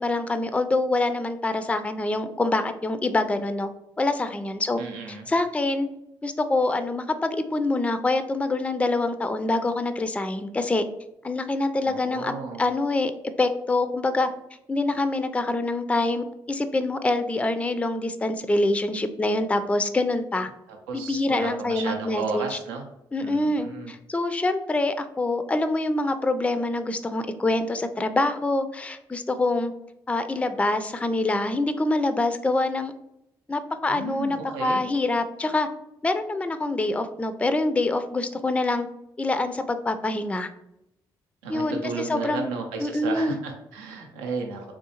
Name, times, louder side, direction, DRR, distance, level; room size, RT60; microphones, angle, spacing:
voice 1, 0.0-3.7 4.0-4.8 5.1-5.9 6.2-10.8 11.2-12.3 12.6-13.1 13.4-14.3 14.7-20.5 20.9-22.6 23.1-29.7 30.1-32.9 33.5-35.7 36.0-38.9 39.2-40.5 41.5-42.5 42.8-43.4, left 2 dB, 10° left, 10 dB, 0.3 m, -25 dB
voice 2, 4.8-5.3 11.8-12.6 20.7-22.8 23.2-23.9 33.9-34.8 41.4-44.7, right 4 dB, 90° right, 2 dB, 0.5 m, -33 dB
3.2 x 2.6 x 2.8 m, 0.83 s
hypercardioid pair, 45°, 10 cm